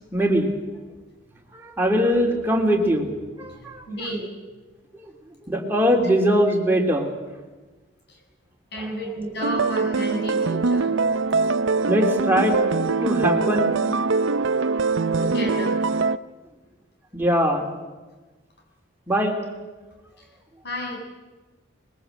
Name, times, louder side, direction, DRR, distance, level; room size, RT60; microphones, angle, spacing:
voice 1, 0.1-0.5 1.5-3.1 3.4-3.9 4.9-5.1 5.4-7.1 8.8-8.9 11.9-12.6 13.0-13.7 14.2-14.7 17.1-17.7 19.1-19.4, equal, 10° right, 1 dB, 2.9 m, -22 dB
voice 2, 3.5-4.3 8.1-8.2 8.7-10.9 15.2-15.8 20.2-20.3 20.6-21.0, equal, 55° left, 1 dB, 6.8 m, -32 dB
sound 1, 9.4-16.2, right 4 dB, 70° right, 0.6 m, -22 dB
21.5 x 21.0 x 7.9 m, 1.2 s
head